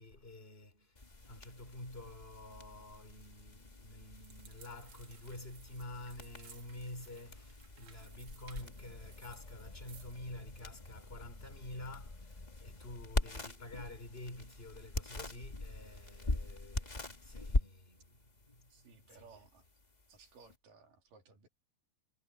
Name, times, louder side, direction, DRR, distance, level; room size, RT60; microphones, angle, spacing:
voice 1, 0.0-19.5, left 1 dB, 15° left, 3.4 m, -49 dB
sound 1, 0.9-20.5, left 2 dB, 40° left, 0.6 m, -42 dB
sound 2, 4.2-10.2, right 6 dB, 45° right, 1.6 m, -60 dB
voice 2, 18.7-19.7 20.1-21.5, right 4 dB, 80° right, 4.6 m, -60 dB
omnidirectional pair, 3.8 m